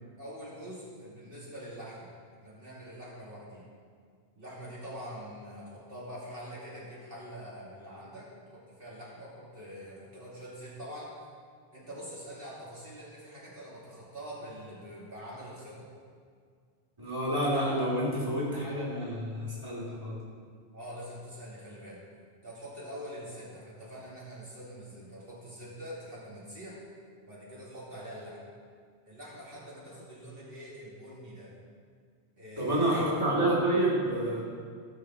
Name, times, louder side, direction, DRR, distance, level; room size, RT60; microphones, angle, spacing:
voice 1, 0.2-2.1 2.4-3.6 4.3-11.1 11.7-15.9 20.7-22.0 22.4-26.8 27.3-28.4 29.0-31.5 32.4-33.2, equal, 60° right, -8 dB, 2.9 m, -44 dB
voice 2, 17.0-20.2 32.6-34.4, right 1 dB, 30° right, -6 dB, 3.1 m, -28 dB
17.5 x 7.0 x 4.8 m, 2.1 s
omnidirectional pair, 1.1 m